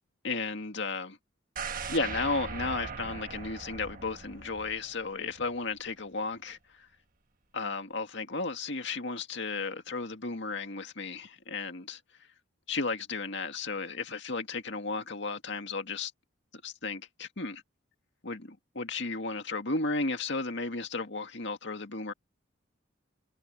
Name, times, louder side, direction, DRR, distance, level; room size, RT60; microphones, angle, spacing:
voice 1, 0.2-1.2 1.9-6.9 7.5-12.0 12.7-16.1 16.6-17.6 18.2-22.1, left 3 dB, 60° left, 2.2 m, -34 dB
sound 1, 1.6-5.5 5.9-6.0, right 5 dB, 45° right, 1.4 m, -40 dB
head